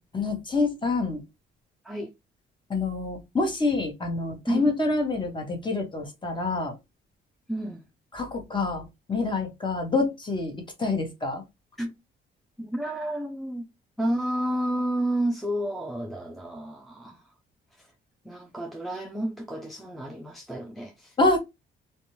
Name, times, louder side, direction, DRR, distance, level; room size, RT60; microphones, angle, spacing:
voice 1, 0.1-1.2 2.7-6.7 8.1-11.4 21.2-21.4, left 3 dB, 25° left, 1.1 m, -27 dB
voice 2, 7.5-7.9 11.8-11.9 12.6-13.7 14.0-17.2 17.8-17.9 18.2-21.1, right 1 dB, ahead, 0.4 m, -30 dB
2.5 x 2.2 x 3.0 m
cardioid pair, 90°, 20 cm